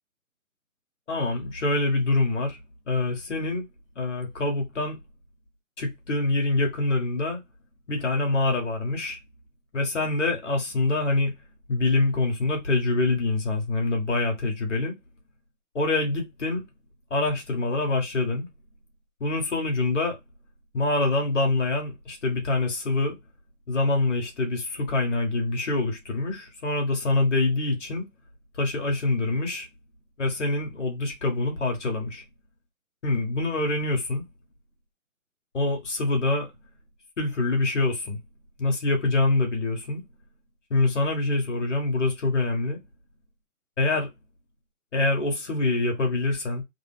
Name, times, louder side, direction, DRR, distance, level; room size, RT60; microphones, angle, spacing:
voice 1, 1.1-2.6 2.9-3.6 4.0-5.0 5.8-7.4 7.9-9.2 9.7-11.3 11.7-14.9 15.7-16.6 17.1-18.5 19.2-20.2 20.7-23.2 23.7-28.1 28.5-29.7 30.2-32.2 33.0-34.2 35.5-36.5 37.2-38.2 38.6-40.0 40.7-42.8 43.8-44.1 44.9-46.6, left 2 dB, 55° left, 1.8 m, -25 dB
3.6 x 2.3 x 3.5 m
hypercardioid pair, 170°, 43 cm